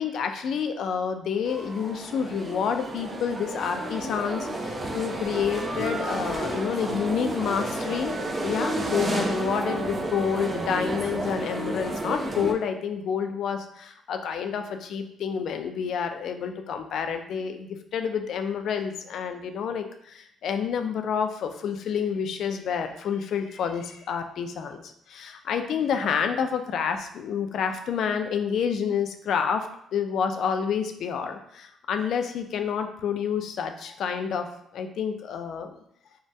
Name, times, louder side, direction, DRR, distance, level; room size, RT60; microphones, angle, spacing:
voice 1, 0.0-13.6 14.1-34.5 34.7-35.7, left 7 dB, 70° left, 6 dB, 0.3 m, -29 dB
sound 1, 1.5-12.5, right 1 dB, 30° right, 0.4 m, -31 dB
2.6 x 2.2 x 3.2 m, 0.73 s
cardioid pair, 90°, 0 cm